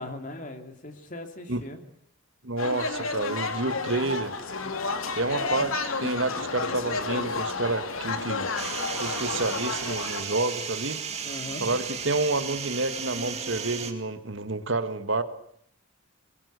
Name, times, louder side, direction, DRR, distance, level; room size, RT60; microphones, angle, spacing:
voice 1, 0.0-1.8 5.3-5.7 11.2-11.6, left 2 dB, 40° left, 6 dB, 3.0 m, -39 dB
voice 2, 2.4-4.4 5.1-8.5 9.0-11.0 11.6-15.2, right 2 dB, 65° right, 10 dB, 1.7 m, -29 dB
sound 1, 2.6-10.2, left 3 dB, 85° left, 3.0 m, -31 dB
sound 2, 4.5-9.7, left 4 dB, 70° left, 1.2 m, -40 dB
sound 3, 8.6-13.9, right 6 dB, 30° right, 2.5 m, -34 dB
23.5 x 22.0 x 8.2 m, 0.68 s
head